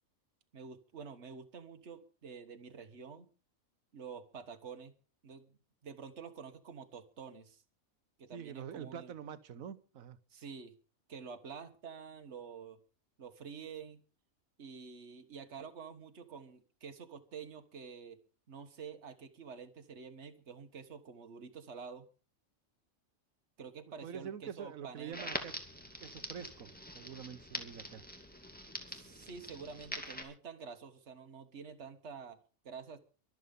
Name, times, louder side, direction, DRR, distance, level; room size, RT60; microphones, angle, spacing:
voice 1, 0.5-3.3 3.9-4.9 5.2-5.6 5.8-7.6 8.2-9.1 10.3-10.8 11.1-12.8 13.2-14.0 14.6-18.2 18.5-22.1 23.6-25.4 28.9-33.0, right 6 dB, 55° right, 7 dB, 1.7 m, -48 dB
voice 2, 8.3-10.2 24.0-25.6 26.0-28.0, right 8 dB, 75° right, 15 dB, 1.4 m, -46 dB
Crackle, 25.1-30.2, equal, 5° left, 2.3 m, -44 dB
23.5 x 8.0 x 5.4 m, 0.37 s
omnidirectional pair, 1.4 m